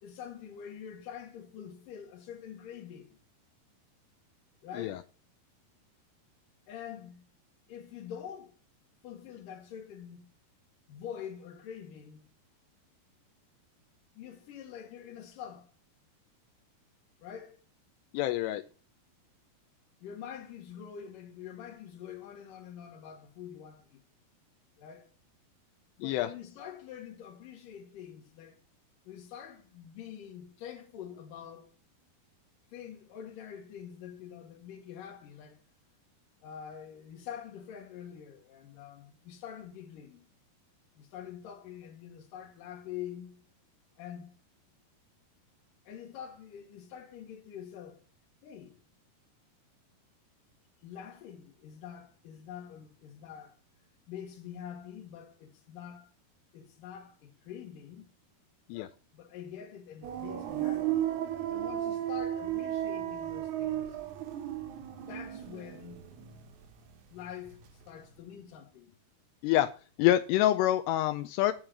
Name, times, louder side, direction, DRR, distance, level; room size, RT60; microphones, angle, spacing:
voice 1, 0.0-3.2 4.6-5.1 6.7-7.2 7.7-8.5 9.0-10.3 10.9-12.2 14.1-15.7 17.2-17.6 20.0-24.0 24.8-25.1 26.0-28.6 29.0-31.8 32.7-35.6 36.4-40.3 40.9-43.4 44.0-44.3 45.9-48.0 48.4-48.8 50.8-53.6 54.1-56.1 56.5-58.1 59.1-61.1 61.5-64.0 65.0-66.0 67.1-67.6 67.9-69.0, left 9 dB, 60° left, 3.0 m, -45 dB
voice 2, 18.1-18.6 26.0-26.3 58.7-58.9 69.4-69.7 70.0-71.5, left 14 dB, 85° left, 2.7 m, -26 dB
sound 1, 60.0-66.9 67.2-67.9, right 12 dB, 75° right, 1.8 m, -34 dB
10.5 x 4.8 x 7.4 m
omnidirectional pair, 4.8 m